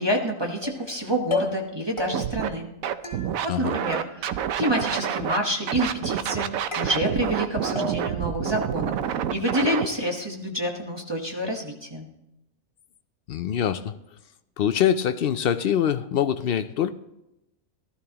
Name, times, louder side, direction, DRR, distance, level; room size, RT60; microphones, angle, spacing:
voice 1, 0.0-2.7 3.4-12.0, equal, 20° right, 1 dB, 1.2 m, -28 dB
sound 1, 0.6-1.0 1.3-1.7 2.0-2.5 3.0-3.6 3.9-4.6 4.9-5.4 5.8-6.3 6.7-7.4 7.8-8.3, left 4 dB, 20° left, 1.7 m, -34 dB
Scratching (performance technique), 2.1-2.5 2.8-5.4 5.7-9.9, right 9 dB, 80° right, 1.0 m, -28 dB
voice 2, 13.3-13.9 14.6-16.9, left 9 dB, 65° left, 11 dB, 0.5 m, -24 dB
16.5 x 12.5 x 2.9 m, 0.89 s
omnidirectional pair, 1.5 m